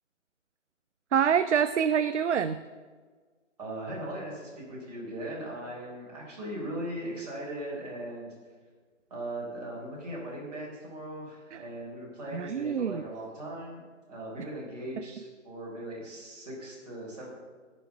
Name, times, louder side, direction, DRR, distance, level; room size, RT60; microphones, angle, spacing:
voice 1, 1.1-2.6 11.5-11.6 12.3-13.0, right 7 dB, 65° right, 11 dB, 0.6 m, -26 dB
voice 2, 3.6-8.3 9.1-17.3, right 1 dB, 30° right, -5 dB, 4.2 m, -39 dB
13.5 x 6.4 x 7.2 m, 1.5 s
hypercardioid pair, 180°, 38 cm